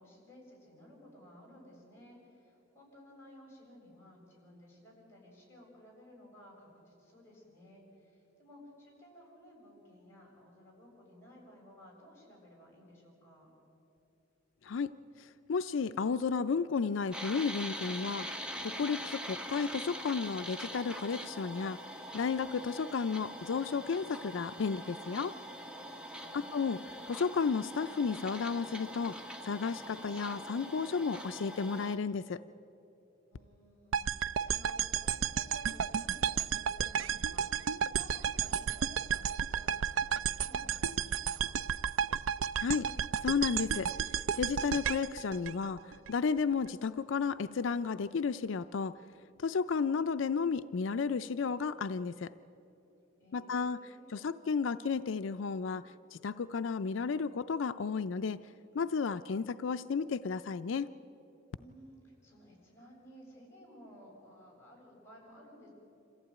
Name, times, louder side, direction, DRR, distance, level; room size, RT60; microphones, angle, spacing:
voice 1, 0.0-13.5 26.2-27.2 33.3-41.6 53.2-54.1 61.6-65.7, equal, 15° left, -2 dB, 7.1 m, -56 dB
voice 2, 15.2-18.3 18.6-21.8 22.1-25.3 26.3-26.8 27.1-32.4 42.6-42.9 43.2-43.9 44.4-48.9 49.4-52.3 53.3-53.8 54.1-58.4 58.7-60.9, left 5 dB, 75° left, 11 dB, 0.4 m, -33 dB
sound 1, 17.1-32.0, equal, 5° right, 1.2 m, -43 dB
sound 2, 33.9-46.1, right 8 dB, 90° right, 0.4 m, -33 dB
26.5 x 15.0 x 9.2 m, 3.0 s
head